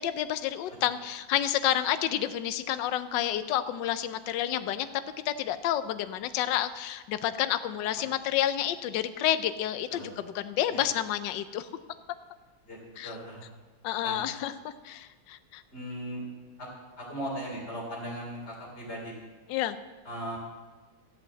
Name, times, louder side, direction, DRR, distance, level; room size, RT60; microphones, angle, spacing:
voice 1, 0.0-4.9 5.2-11.7 13.0-13.2 13.8-14.5 14.8-15.6 19.5-19.8, left 11 dB, 70° left, 12 dB, 1.2 m, -29 dB
voice 2, 13.0-13.4 14.0-14.2 15.7-16.2 17.0-19.1 20.1-20.4, equal, 30° left, -3 dB, 4.0 m, -37 dB
13.5 x 8.0 x 7.6 m, 1.3 s
omnidirectional pair, 2.3 m